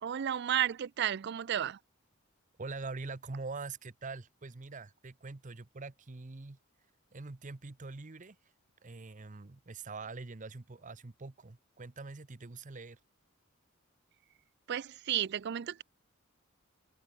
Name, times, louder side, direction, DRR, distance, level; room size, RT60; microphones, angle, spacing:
voice 1, 0.0-1.8 14.7-15.8, right 10 dB, 50° right, 0.4 m, -32 dB
voice 2, 2.6-6.6 7.1-8.5 8.8-13.0, right 3 dB, 35° right, 0.8 m, -44 dB
head